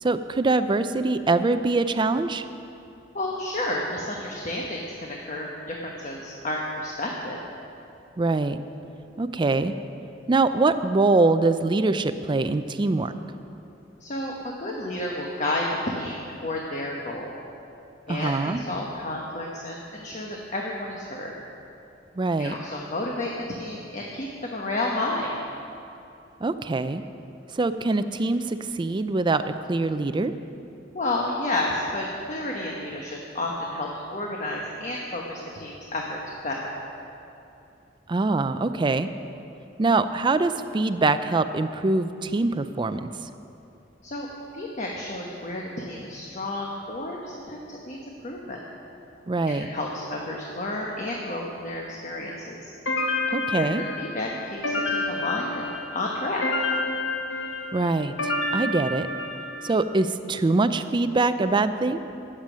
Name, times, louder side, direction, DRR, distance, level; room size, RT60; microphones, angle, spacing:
voice 1, 0.0-2.5 8.2-8.6 9.2-9.7 10.3-13.1 18.1-18.6 22.2-22.6 26.4-27.0 27.5-30.3 38.1-39.1 39.8-43.3 49.3-49.7 53.3-53.8 57.7-59.1 59.6-62.0, right 3 dB, 25° right, 11 dB, 0.4 m, -23 dB
voice 2, 3.1-7.4 14.0-17.3 18.1-21.3 22.4-25.3 30.9-36.7 44.0-44.3 44.5-48.6 49.4-52.7 53.5-54.6 54.9-56.4, left 1 dB, 40° left, -1 dB, 1.1 m, -31 dB
sound 1, 52.9-59.8, left 2 dB, 75° left, 1.7 m, -29 dB
13.0 x 8.9 x 6.2 m, 2.7 s
head